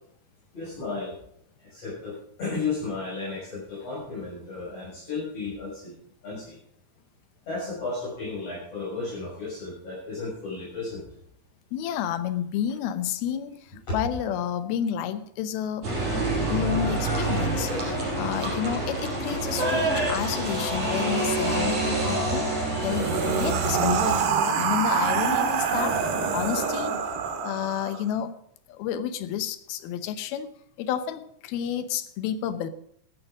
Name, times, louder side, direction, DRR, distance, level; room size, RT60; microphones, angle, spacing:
voice 1, 0.5-1.2 1.6-6.0 6.2-6.6 7.5-11.0 13.9-14.0, left 3 dB, 40° left, -8 dB, 7.3 m, -33 dB
voice 2, 11.7-15.9 16.5-26.9 27.4-28.4 28.7-30.5 30.8-32.7, left 9 dB, 80° left, 12 dB, 2.7 m, -30 dB
sound 1, 15.8-24.2, right 2 dB, 45° right, 6.4 m, -27 dB
sound 2, 22.8-28.0, right 5 dB, 85° right, 3.4 m, -26 dB
15.0 x 11.0 x 5.2 m, 0.68 s
omnidirectional pair, 4.5 m